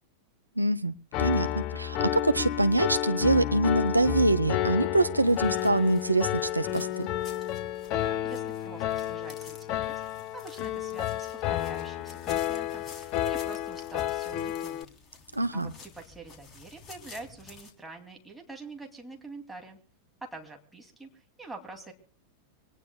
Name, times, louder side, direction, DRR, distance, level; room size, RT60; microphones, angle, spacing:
voice 1, 0.6-0.9 1.2-7.1 15.4-15.7, right 2 dB, 85° right, 11 dB, 0.8 m, -25 dB
Piano, 1.1-14.8, left 12 dB, 40° left, 0.8 m, -31 dB
sound 1, 5.2-17.7, left 5 dB, 25° left, 3.3 m, -52 dB
voice 2, 7.7-10.0 10.3-15.0 15.5-19.8 20.2-21.9, right 3 dB, 5° right, 2 dB, 2.5 m, -46 dB
25.0 x 19.5 x 2.2 m, 0.42 s
figure-of-eight pair, 90°, 0 cm